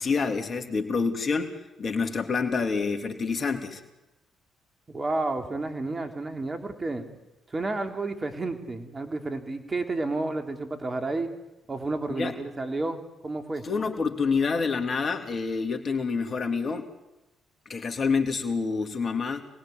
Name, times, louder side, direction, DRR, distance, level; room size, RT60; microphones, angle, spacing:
voice 1, 0.0-3.8 12.2-12.3 13.6-16.9 17.6-19.4, left 5 dB, 45° left, 6 dB, 3.3 m, -27 dB
voice 2, 4.9-7.1 7.5-11.3 11.7-13.6, right 2 dB, 30° right, 6 dB, 3.7 m, -31 dB
28.5 x 21.0 x 9.6 m, 1.0 s
hypercardioid pair, 45°, 0 cm